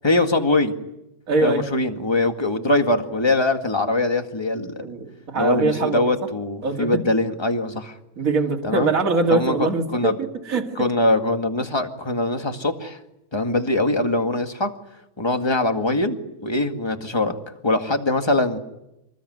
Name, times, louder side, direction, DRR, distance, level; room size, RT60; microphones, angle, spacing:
voice 1, 0.0-0.7 1.4-4.7 5.3-8.0 8.6-8.9 9.3-10.2 10.8-13.0 13.3-14.7 15.2-17.3 17.6-18.6, left 2 dB, 15° left, 5 dB, 1.8 m, -22 dB
voice 2, 1.3-1.6 4.8-6.1 6.6-7.0 8.2-10.2 10.5-10.7, right 3 dB, 45° right, 3 dB, 2.4 m, -22 dB
27.0 x 20.5 x 9.5 m, 0.89 s
omnidirectional pair, 2.1 m